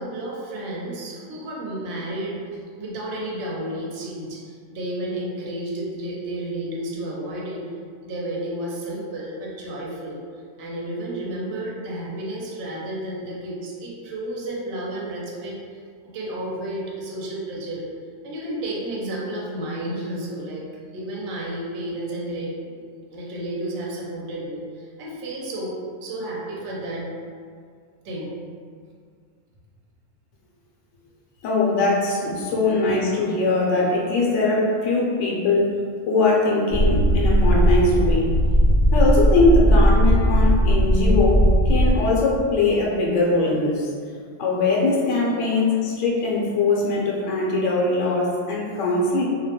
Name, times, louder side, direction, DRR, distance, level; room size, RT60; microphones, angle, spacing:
voice 1, 0.0-2.4 2.8-4.4 4.7-7.6 8.0-10.2 10.6-15.6 16.1-17.8 18.2-20.6 20.9-22.8 23.1-27.1 28.0-28.3, right 1 dB, 70° right, -4 dB, 0.8 m, -31 dB
voice 2, 31.4-35.7 36.1-38.3 38.9-43.9 44.4-49.2, left 2 dB, 75° left, -3 dB, 0.9 m, -21 dB
sound 1, 36.7-41.9, equal, 40° left, 0.6 m, -17 dB
2.2 x 2.1 x 2.8 m, 2.1 s
omnidirectional pair, 1.3 m